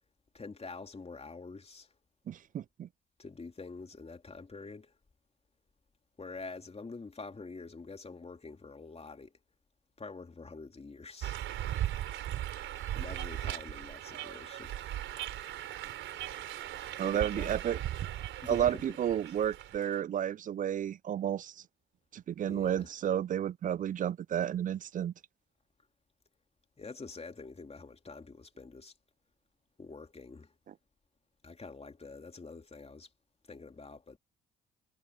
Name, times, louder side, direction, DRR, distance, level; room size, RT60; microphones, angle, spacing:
voice 1, 0.3-1.9 3.2-4.9 6.2-9.3 10.0-11.4 12.9-14.8 17.0-17.5 18.4-18.8 19.1-19.2 22.5-22.9 26.8-28.9 29.8-30.5 31.4-33.1 33.5-34.2, left 4 dB, 30° left, 2.9 m, -46 dB
voice 2, 2.3-2.9 17.0-17.8 18.5-21.5 22.1-25.1, right 10 dB, 40° right, 0.4 m, -32 dB
sound 1, 11.2-20.0, right 12 dB, 70° right, 4.0 m, -38 dB
hypercardioid pair, 50°, 20 cm